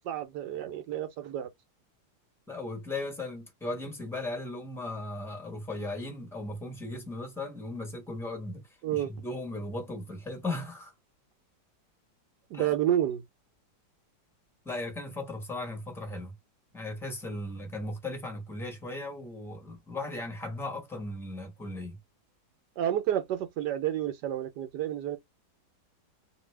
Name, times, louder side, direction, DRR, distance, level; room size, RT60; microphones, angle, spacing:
voice 1, 0.0-1.5 8.8-9.1 12.5-13.2 22.8-25.2, right 11 dB, 70° right, 1.1 m, -30 dB
voice 2, 2.5-10.9 12.5-12.7 14.6-16.4 16.7-22.0, left 2 dB, ahead, 0.7 m, -37 dB
2.8 x 2.6 x 3.2 m
omnidirectional pair, 2.0 m